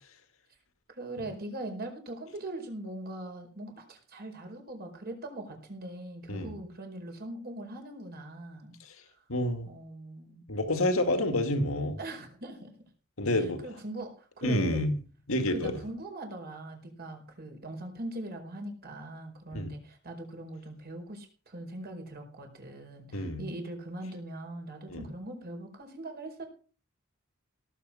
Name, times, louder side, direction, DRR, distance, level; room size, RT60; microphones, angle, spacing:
voice 1, 0.9-8.8 9.7-10.5 12.0-12.7 13.4-14.9 15.5-26.5, right 1 dB, 50° right, 4 dB, 4.9 m, -41 dB
voice 2, 9.3-9.7 10.5-12.0 13.2-13.6 14.4-15.0 15.3-15.8 19.5-19.7 23.1-23.4 24.9-25.0, left 1 dB, 70° left, 6 dB, 2.2 m, -28 dB
17.5 x 8.6 x 5.7 m, 0.39 s
head